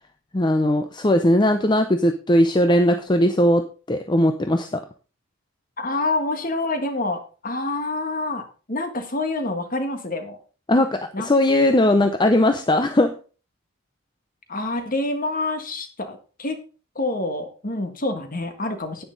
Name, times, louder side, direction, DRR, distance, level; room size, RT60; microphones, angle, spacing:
voice 1, 0.3-3.6 3.9-4.8 10.7-13.1, left 1 dB, 20° left, 7 dB, 0.6 m, -19 dB
voice 2, 5.8-10.4 11.1-11.3 14.5-16.6 16.9-19.0, left 2 dB, 40° left, 7 dB, 1.7 m, -27 dB
10.0 x 9.2 x 3.9 m, 0.36 s
head